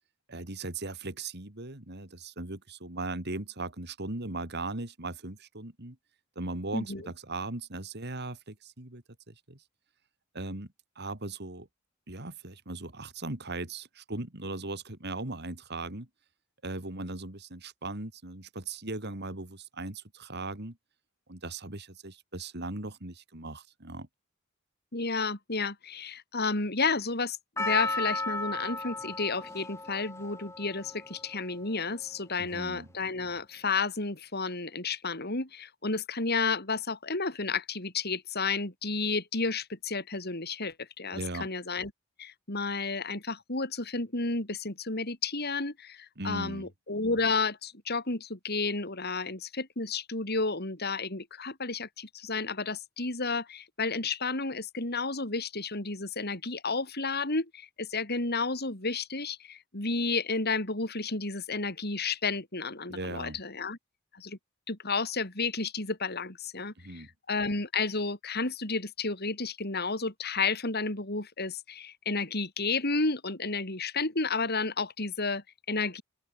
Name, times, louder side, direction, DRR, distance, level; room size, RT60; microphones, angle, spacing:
voice 1, 0.3-6.0 6.3-9.6 10.3-11.7 12.1-16.1 16.6-20.8 21.3-24.1 32.4-32.9 41.1-41.5 46.2-46.7 62.9-63.4 66.8-67.1, right 2 dB, 55° right, 3.2 m, -38 dB
voice 2, 6.7-7.1 24.9-41.9 42.2-63.8 64.1-64.4 64.7-76.0, left 4 dB, 50° left, 4.9 m, -32 dB
Percussion, 27.6-31.9 32.6-32.7, left 2 dB, 15° left, 1.9 m, -35 dB
open air
head